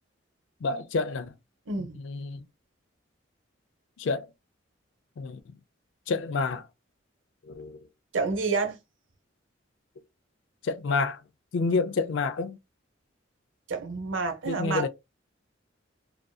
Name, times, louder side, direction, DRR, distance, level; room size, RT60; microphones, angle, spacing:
voice 1, 0.6-1.4 2.0-2.4 4.0-4.3 5.2-5.5 6.1-6.7 7.4-7.9 10.6-11.2 11.5-12.6 14.5-14.9, left 4 dB, 70° left, 0.4 m, -29 dB
voice 2, 8.1-8.8 13.7-14.9, right 4 dB, 80° right, 0.7 m, -29 dB
2.6 x 2.4 x 2.3 m
head